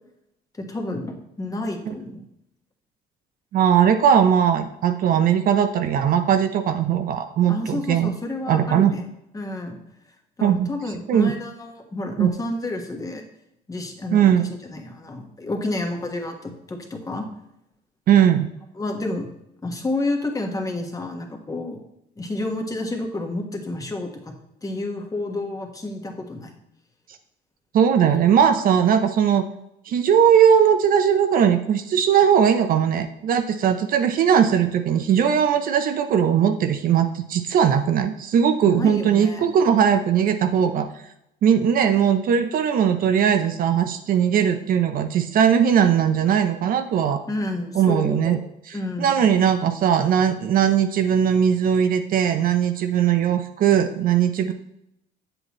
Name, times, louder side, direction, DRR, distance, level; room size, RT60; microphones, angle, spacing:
voice 1, 0.6-2.3 7.5-9.8 10.4-13.2 13.7-17.3 18.8-19.3 19.6-21.8 22.2-24.3 24.6-26.5 38.7-39.5 47.3-48.4 48.7-49.1, left 2 dB, 20° left, 3 dB, 1.5 m, -30 dB
voice 2, 3.5-8.1 8.5-8.9 10.4-10.7 11.1-11.3 12.2-12.3 14.1-14.4 18.1-18.5 27.7-29.4 29.9-40.9 41.4-47.2 47.8-48.4 48.7-54.5, right 8 dB, 55° right, 8 dB, 0.7 m, -19 dB
8.0 x 7.8 x 3.1 m, 0.81 s
cardioid pair, 110°, 17 cm